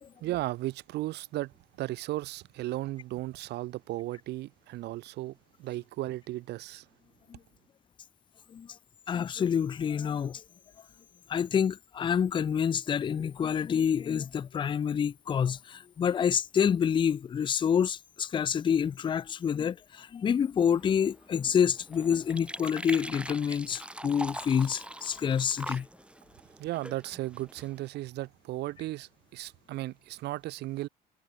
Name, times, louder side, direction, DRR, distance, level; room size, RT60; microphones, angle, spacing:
voice 1, 0.2-6.9 25.7-25.8 26.6-30.9, right 17 dB, 80° right, 4.0 m, -35 dB
voice 2, 9.1-10.4 11.3-25.9, left 8 dB, 30° left, 0.4 m, -28 dB
sound 1, 20.7-27.9, right 1 dB, 5° right, 6.9 m, -43 dB
cardioid pair, 110°, 17 cm